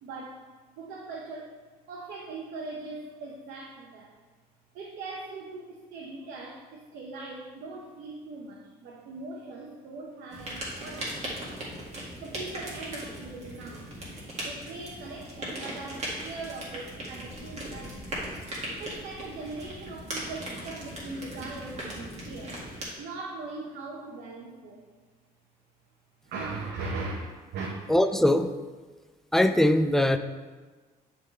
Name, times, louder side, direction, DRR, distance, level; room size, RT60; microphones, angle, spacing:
voice 1, 0.0-0.4 0.8-1.5 1.9-4.1 4.7-11.5 12.2-13.9 14.4-18.1 18.8-22.6 23.0-24.8 26.2-27.7, right 3 dB, 80° right, -2 dB, 0.9 m, -40 dB
sound 1, 10.3-22.8, right 1 dB, 40° right, 2.1 m, -38 dB
voice 2, 27.9-28.5 29.3-30.2, left 1 dB, ahead, 8 dB, 0.4 m, -21 dB
9.5 x 3.7 x 3.3 m, 1.3 s
cardioid pair, 110°, 17 cm